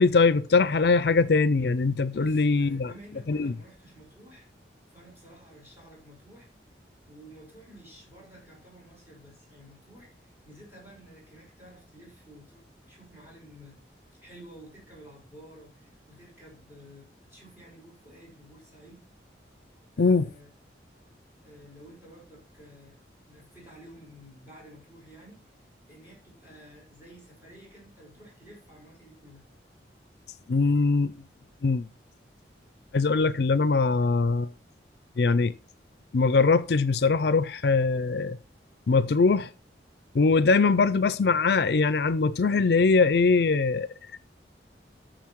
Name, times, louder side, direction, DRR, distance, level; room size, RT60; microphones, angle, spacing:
voice 1, 0.0-2.9 3.3-3.5 20.0-20.3 30.5-31.1 31.6-31.9 32.9-34.5 35.2-35.5 36.1-38.4 38.9-39.5 40.1-44.2, left 4 dB, 65° left, 0.5 m, -22 dB
voice 2, 2.1-4.5 4.9-6.5 7.0-19.0 19.9-20.5 21.4-25.4 25.9-29.4, equal, 15° right, 6.2 m, -51 dB
9.4 x 6.8 x 4.6 m
head